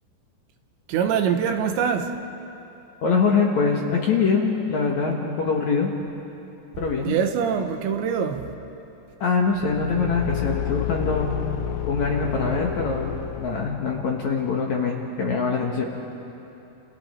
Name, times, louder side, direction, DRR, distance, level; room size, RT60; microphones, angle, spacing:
voice 1, 0.9-2.2 7.0-8.5, right 7 dB, 85° right, 3.5 m, -23 dB
voice 2, 3.0-5.9 6.8-7.2 9.2-11.3 11.9-15.8, left 5 dB, 60° left, 2.1 m, -23 dB
Car / Engine, 9.5-14.0, left 9 dB, 85° left, 2.0 m, -30 dB
30.0 x 29.0 x 4.4 m
omnidirectional pair, 5.1 m